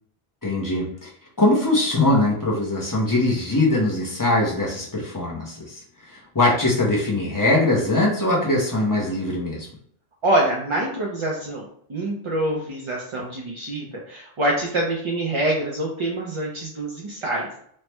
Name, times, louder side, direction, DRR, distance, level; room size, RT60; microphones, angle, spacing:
voice 1, 0.4-1.1 1.4-9.7, left 2 dB, 25° left, -4 dB, 0.5 m, -22 dB
voice 2, 10.2-17.6, right 1 dB, 45° right, -3 dB, 0.4 m, -25 dB
3.2 x 2.1 x 2.9 m, 0.63 s
omnidirectional pair, 1.1 m